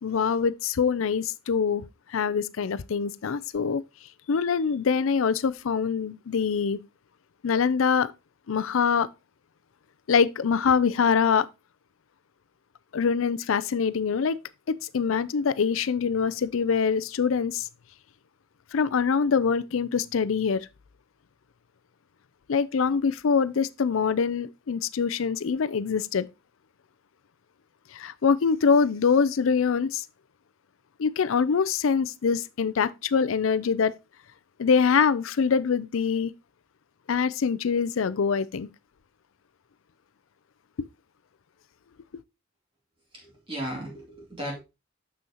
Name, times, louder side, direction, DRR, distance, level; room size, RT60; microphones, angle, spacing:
voice 1, 0.0-1.8 2.1-3.8 4.3-6.8 7.4-8.1 8.5-9.1 10.1-11.5 12.9-14.4 14.8-17.7 18.7-20.7 22.5-26.3 27.9-30.0 31.0-33.9 34.6-36.3 37.1-38.7, left 6 dB, 80° left, 0.5 m, -24 dB
voice 2, 43.1-44.6, equal, 25° right, 2.4 m, -36 dB
7.0 x 6.3 x 2.8 m
head